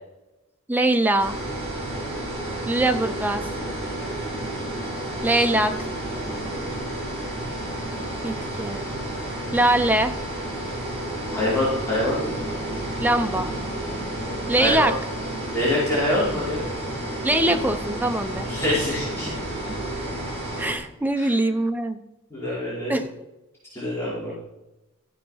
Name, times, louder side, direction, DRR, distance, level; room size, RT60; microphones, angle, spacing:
voice 1, 0.7-1.4 2.6-3.5 5.2-5.9 8.2-8.8 9.5-10.1 13.0-13.5 14.5-14.9 17.2-18.5 20.6-22.0 22.9-23.1, right 1 dB, 10° right, 7 dB, 0.8 m, -22 dB
sound 1, 1.2-20.7, right 1 dB, 30° right, 5.1 m, -31 dB
voice 2, 6.2-6.6 11.3-12.2 14.5-14.9 15.5-16.6 18.4-19.3 21.2-21.3 22.3-23.0 23.7-24.3, left 1 dB, 10° left, -9 dB, 4.7 m, -25 dB
13.5 x 7.6 x 5.7 m, 0.96 s
head